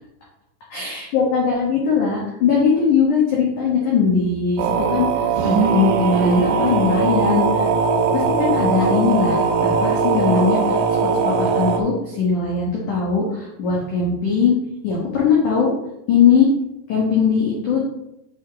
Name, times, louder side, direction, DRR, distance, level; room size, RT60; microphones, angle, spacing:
voice 1, 0.7-5.1 5.4-7.7 8.1-14.5 14.8-15.7 16.1-16.5 16.9-17.8, left 6 dB, 90° left, -4 dB, 1.7 m, -20 dB
sound 1, 4.6-11.8, right 5 dB, 85° right, 2.5 m, -19 dB
9.6 x 5.0 x 3.5 m, 0.85 s
omnidirectional pair, 5.9 m